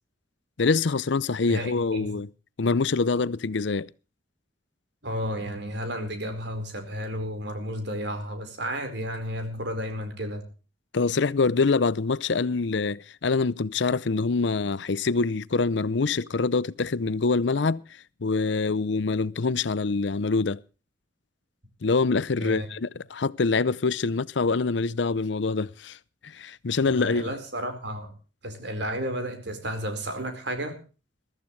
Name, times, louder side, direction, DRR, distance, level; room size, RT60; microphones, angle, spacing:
voice 1, 0.6-2.3 2.6-3.9 10.9-17.8 18.2-20.6 21.8-26.0 26.2-27.3, left 4 dB, 70° left, 0.6 m, -25 dB
voice 2, 1.5-2.2 5.0-10.4 22.4-22.7 26.8-28.1 28.4-30.8, equal, 65° right, 4.6 m, -32 dB
22.0 x 14.0 x 3.2 m
head